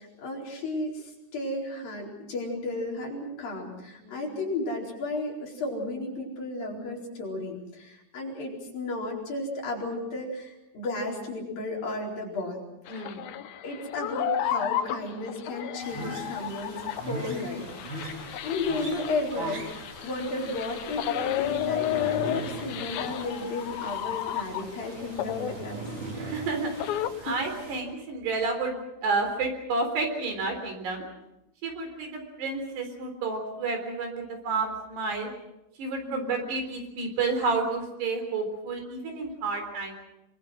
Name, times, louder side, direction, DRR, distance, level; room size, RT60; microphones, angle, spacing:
voice 1, 0.0-12.6 12.9-13.1 13.6-25.9 27.2-27.4 36.1-36.3, left 2 dB, 50° left, -2 dB, 6.0 m, -34 dB
sound 1, 12.9-24.8 25.2-27.1, left 11 dB, 70° left, 2.3 m, -32 dB
voice 2, 12.9-13.3 26.2-26.7 27.2-31.1 31.6-35.3 35.8-40.0, right 3 dB, 60° right, 5 dB, 5.8 m, -30 dB
sound 2, 15.8-27.8, right 2 dB, 45° right, 5.0 m, -40 dB
25.0 x 24.5 x 6.3 m, 0.91 s
omnidirectional pair, 5.4 m